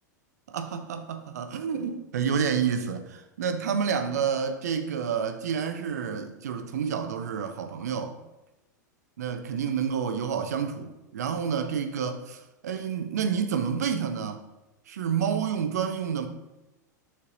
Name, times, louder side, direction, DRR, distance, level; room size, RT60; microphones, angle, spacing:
voice 1, 0.5-8.2 9.2-14.4 14.9-16.3, right 7 dB, 60° right, 0.9 m, -29 dB
6.8 x 4.5 x 6.7 m
figure-of-eight pair, 90°, 10 cm